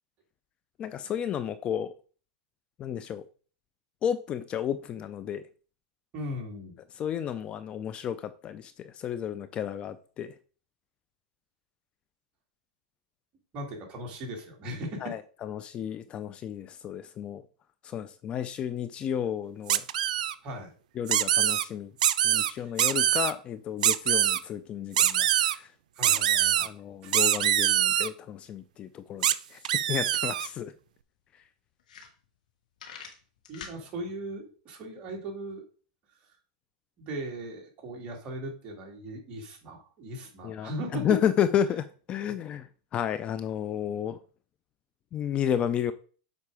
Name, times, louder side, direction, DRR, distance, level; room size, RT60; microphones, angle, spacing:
voice 1, 0.8-1.9 2.8-3.2 4.0-5.4 7.0-10.3 15.0-17.4 17.8-19.8 21.0-21.9 22.2-25.7 26.6-29.3 29.5-29.6 29.9-30.7 40.4-44.2 45.1-45.9, left 9 dB, 25° left, 13 dB, 0.4 m, -32 dB
voice 2, 6.1-6.8 13.5-15.1 20.4-20.7 22.6-22.7 25.9-26.7 27.0-27.2 33.5-35.6 37.0-41.1, right 1 dB, 30° right, 1 dB, 2.4 m, -38 dB
sound 1, 19.7-20.3 21.1-21.6 22.0-22.5 22.8-23.3 23.8-24.4 25.0-25.6 26.0-26.7 27.1-28.1 29.2-29.3 29.7-30.5, right 11 dB, 85° right, 0.5 m, -24 dB
sound 2, 30.4-30.5 30.8-30.9 31.4-31.5 31.8-32.5 32.8-33.8, left 7 dB, 80° left, 1.9 m, -44 dB
7.4 x 4.6 x 4.8 m, 0.41 s
supercardioid pair, 145°, 4 cm